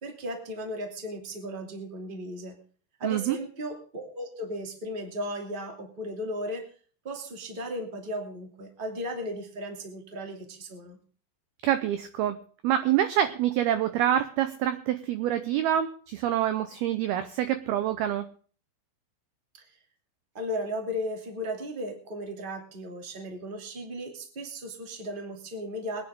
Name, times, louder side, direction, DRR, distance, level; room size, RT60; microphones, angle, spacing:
voice 1, 0.0-2.5 3.0-6.6 7.0-11.0 20.3-26.0, equal, 20° right, 3 dB, 1.6 m, -35 dB
voice 2, 3.0-3.4 11.6-18.3, right 11 dB, 80° right, 10 dB, 2.3 m, -26 dB
23.0 x 9.7 x 3.6 m, 0.42 s
omnidirectional pair, 5.3 m